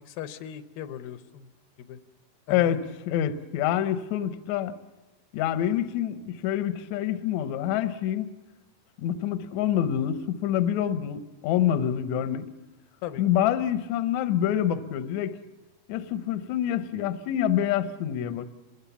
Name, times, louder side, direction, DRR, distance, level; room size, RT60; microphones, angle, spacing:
voice 1, 0.0-1.5 1.8-2.0 2.5-2.8 13.0-13.2, left 10 dB, 85° left, 10 dB, 2.8 m, -38 dB
voice 2, 2.5-4.7 5.3-8.3 9.0-12.5 13.2-15.4 15.9-18.5, left 10 dB, 70° left, 11 dB, 1.9 m, -26 dB
28.0 x 22.0 x 7.1 m, 1.1 s
omnidirectional pair, 4.1 m